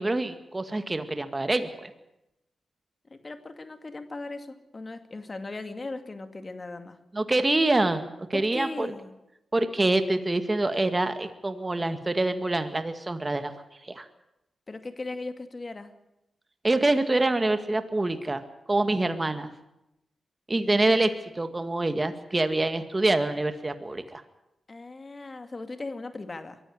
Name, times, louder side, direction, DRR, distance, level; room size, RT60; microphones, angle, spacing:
voice 1, 0.0-1.9 7.1-8.9 9.5-13.5 13.8-14.1 16.6-18.4 18.7-19.5 20.5-24.2, right 2 dB, 30° right, 9 dB, 2.0 m, -26 dB
voice 2, 3.1-7.0 8.3-9.1 14.7-15.9 24.7-26.6, left 3 dB, 40° left, 8 dB, 2.3 m, -38 dB
23.0 x 14.5 x 9.7 m, 0.90 s
cardioid pair, 50°, 0 cm